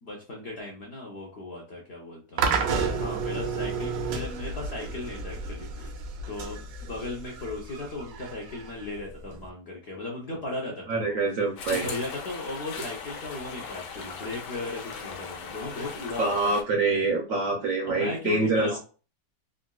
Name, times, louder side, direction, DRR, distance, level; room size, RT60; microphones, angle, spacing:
voice 1, 0.0-2.5 2.9-5.9 6.3-16.6 17.3-17.4 17.8-18.8, left 2 dB, 60° left, -2 dB, 0.7 m, -37 dB
sound 1, 2.4-9.5, right 4 dB, 85° right, 1.3 m, -31 dB
voice 2, 10.9-11.9 16.2-18.7, right 3 dB, 70° right, 2 dB, 0.8 m, -25 dB
sound 2, 11.6-16.6, left 5 dB, 80° left, 1.3 m, -39 dB
3.7 x 2.4 x 2.2 m, 0.36 s
omnidirectional pair, 1.9 m